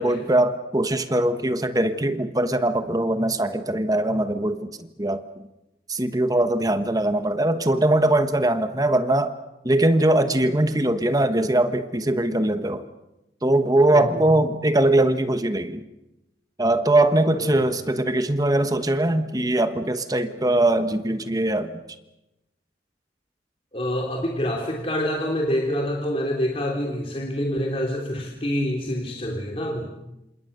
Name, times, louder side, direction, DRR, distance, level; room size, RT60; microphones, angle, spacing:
voice 1, 0.0-5.2 5.9-9.3 9.6-12.8 13.4-15.8 16.6-21.8, right 1 dB, 20° right, 9 dB, 1.2 m, -21 dB
voice 2, 13.9-14.3 17.4-17.7 23.7-29.9, equal, 30° left, 1 dB, 3.3 m, -27 dB
28.0 x 27.0 x 6.7 m, 0.93 s
head